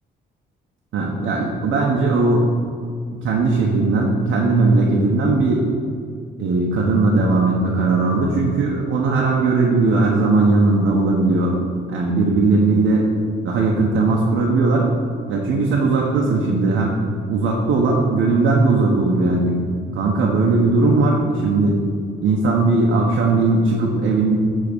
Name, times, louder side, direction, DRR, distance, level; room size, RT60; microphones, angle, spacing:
voice 1, 0.9-2.4 3.1-5.7 6.4-11.6 11.9-13.1 13.4-14.9 15.3-17.0 17.3-19.6 19.9-21.8 22.2-24.4, right 3 dB, 75° right, -2 dB, 1.1 m, -18 dB
9.7 x 3.8 x 5.4 m, 2.2 s
cardioid pair, 90°, 20 cm